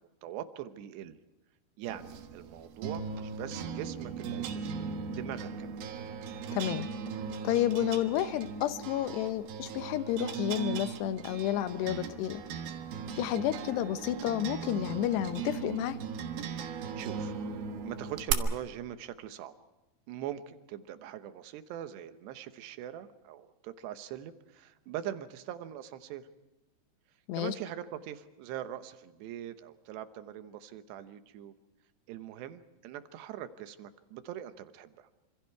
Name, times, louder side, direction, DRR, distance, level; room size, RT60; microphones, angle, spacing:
voice 1, 0.2-1.2 1.8-4.8 5.2-5.8 16.5-17.4 17.9-19.5 20.1-26.3 27.3-31.5 32.1-35.1, right 11 dB, 85° right, 10 dB, 3.3 m, -42 dB
sound 1, 1.9-18.3, right 7 dB, 70° right, 3.1 m, -38 dB
voice 2, 6.5-6.9 7.4-12.4 13.2-16.0 27.3-27.5, left 12 dB, 85° left, 11 dB, 3.1 m, -31 dB
27.5 x 26.5 x 4.7 m, 1.0 s
omnidirectional pair, 4.8 m